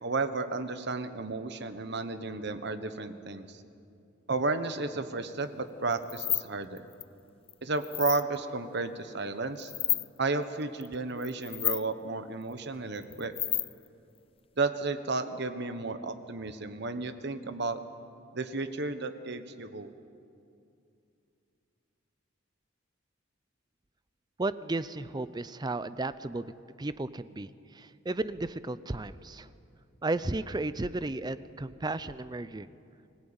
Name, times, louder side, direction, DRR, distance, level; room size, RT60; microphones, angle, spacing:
voice 1, 0.0-3.6 4.3-6.8 7.6-9.7 10.2-13.3 14.6-17.8 18.3-19.9, right 3 dB, 55° right, 10 dB, 1.2 m, -33 dB
sound 1, 5.9-6.5 6.8-7.0 7.5-8.2 9.6-10.1 10.8-11.0 11.2-11.9 13.0-13.9, left 13 dB, 30° left, 0.5 m, -31 dB
voice 2, 24.4-26.5 26.8-29.5 30.0-32.7, right 2 dB, 20° right, 14 dB, 0.5 m, -34 dB
25.0 x 16.5 x 8.8 m, 2.6 s
head